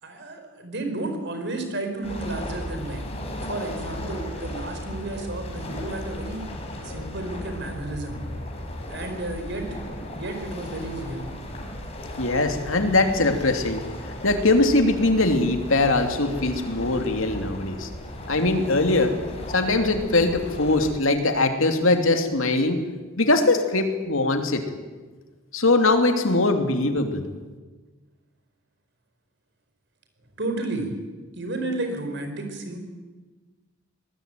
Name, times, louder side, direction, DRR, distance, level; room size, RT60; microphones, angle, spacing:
voice 1, 0.0-3.0 3.4-6.4 6.8-8.2 8.9-9.8 10.1-11.3 30.4-30.9 31.3-32.8, right 2 dB, 55° right, 6 dB, 5.1 m, -32 dB
sound 1, 2.0-20.9, left 1 dB, 30° left, 5.0 m, -36 dB
voice 2, 12.2-13.9 14.2-17.9 18.3-19.2 19.5-22.8 23.2-24.6 25.5-27.2, left 2 dB, 70° left, 6 dB, 2.9 m, -21 dB
24.5 x 20.0 x 9.3 m, 1.3 s
head